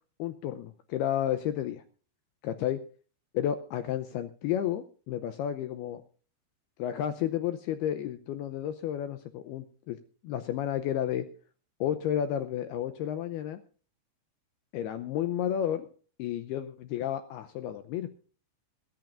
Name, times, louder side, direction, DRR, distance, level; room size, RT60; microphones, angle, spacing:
voice 1, 0.2-1.8 2.4-2.8 3.3-6.0 6.8-10.0 10.2-11.3 11.8-13.6 14.7-15.9 16.2-18.1, left 10 dB, 80° left, 10 dB, 2.3 m, -31 dB
22.0 x 14.0 x 2.6 m, 0.40 s
omnidirectional pair, 5.3 m